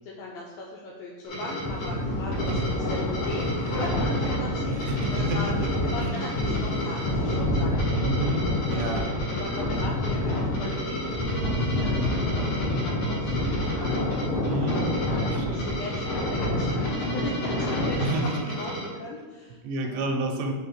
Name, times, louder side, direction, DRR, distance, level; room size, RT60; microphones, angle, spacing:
voice 1, 0.0-5.6 5.8-7.7 8.0-8.3 8.7-9.0 9.3-14.7 14.9-20.1, left 2 dB, 80° left, -3 dB, 2.1 m, -39 dB
sound 1, 1.2-18.9, equal, 45° left, 2.9 m, -35 dB
sound 2, 1.6-18.0, left 1 dB, 65° left, 1.3 m, -28 dB
voice 2, 4.7-5.7 5.9-6.3 8.0-9.1 14.5-14.8 15.3-15.7 18.0-18.5 19.6-20.5, right 1 dB, 90° right, 3 dB, 3.0 m, -30 dB
6.5 x 3.4 x 5.7 m, 1.4 s
omnidirectional pair, 4.8 m